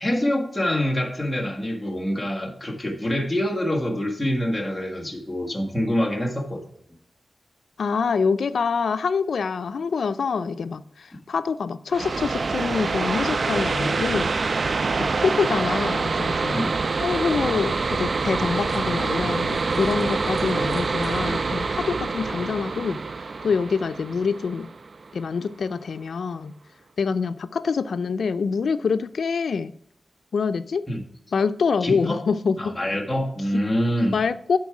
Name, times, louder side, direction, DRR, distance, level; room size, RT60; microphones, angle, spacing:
voice 1, 0.0-6.6 16.5-16.8 30.9-31.0 31.8-32.2 32.6-34.2, equal, 5° left, 1.7 m, -25 dB
voice 2, 7.8-14.3 15.0-16.6 17.0-24.7 25.1-26.5 27.0-29.7 30.3-30.9 31.3-32.7 33.5-33.6 34.1-34.6, left 5 dB, 80° left, 0.4 m, -25 dB
sound 1, 11.9-25.3, right 4 dB, 50° right, 0.3 m, -26 dB
sound 2, 17.2-22.2, right 1 dB, 20° right, 3.4 m, -42 dB
11.5 x 4.5 x 4.8 m
wide cardioid pair, 135°, 0 cm